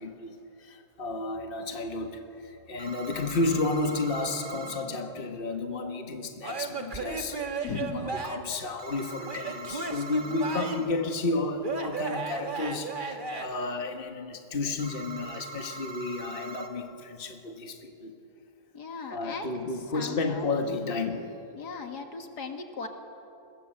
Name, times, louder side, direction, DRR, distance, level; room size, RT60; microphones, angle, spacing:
voice 1, 0.0-7.4 7.8-18.1 19.1-21.3, left 3 dB, 35° left, 5 dB, 1.8 m, -32 dB
sound 1, 2.8-4.9 8.8-10.9 14.8-16.7, right 2 dB, 75° right, 2.7 m, -42 dB
Male speech man speaking / Yell / Laughter, 6.4-8.6 9.2-11.0 11.6-13.5, right 4 dB, 30° right, 2.0 m, -35 dB
voice 2, 7.6-8.1 18.7-19.5 19.9-20.5 21.5-22.9, left 5 dB, 75° left, 5 dB, 2.5 m, -37 dB
29.5 x 21.5 x 7.9 m, 2.9 s
omnidirectional pair, 1.8 m